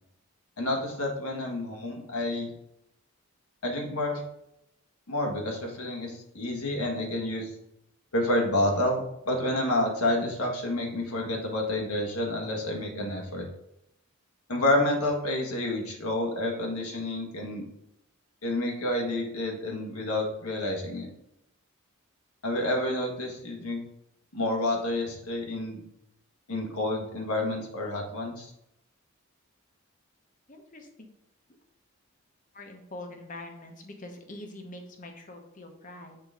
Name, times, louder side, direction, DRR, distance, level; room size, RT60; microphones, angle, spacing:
voice 1, 0.6-2.5 3.6-4.2 5.1-7.5 8.1-13.5 14.5-17.6 18.4-21.1 22.4-23.8 24.3-25.8 26.5-28.5, left 1 dB, 90° left, 1 dB, 1.5 m, -29 dB
voice 2, 30.5-31.1 32.5-36.2, left 1 dB, 35° left, 4 dB, 1.0 m, -44 dB
6.6 x 3.9 x 4.9 m, 0.82 s
head